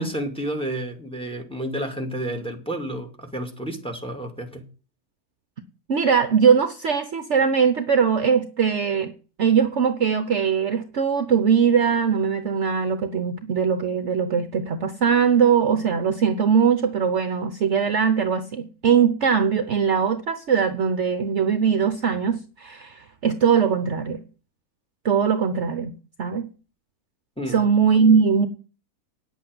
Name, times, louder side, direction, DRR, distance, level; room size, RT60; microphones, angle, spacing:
voice 1, 0.0-4.7 27.4-27.6, right 1 dB, 5° left, 2.2 m, -30 dB
voice 2, 5.9-9.1 9.4-24.2 25.0-26.5 27.5-28.5, right 6 dB, 55° right, 1.1 m, -21 dB
9.4 x 8.3 x 7.7 m
omnidirectional pair, 1.6 m